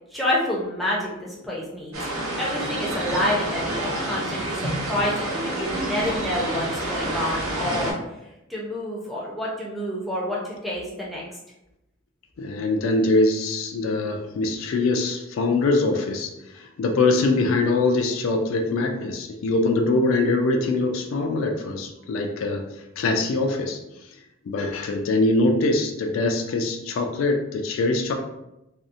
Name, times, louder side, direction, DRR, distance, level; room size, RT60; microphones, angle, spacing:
voice 1, 0.1-2.0 2.4-8.0 8.5-11.2, left 1 dB, ahead, -6 dB, 0.5 m, -28 dB
sound 1, 1.9-7.9, right 1 dB, 85° right, 0.7 m, -28 dB
voice 2, 12.4-22.7 23.0-23.8 24.5-28.1, left 2 dB, 70° left, 4 dB, 0.3 m, -23 dB
2.6 x 2.0 x 2.5 m, 0.90 s
head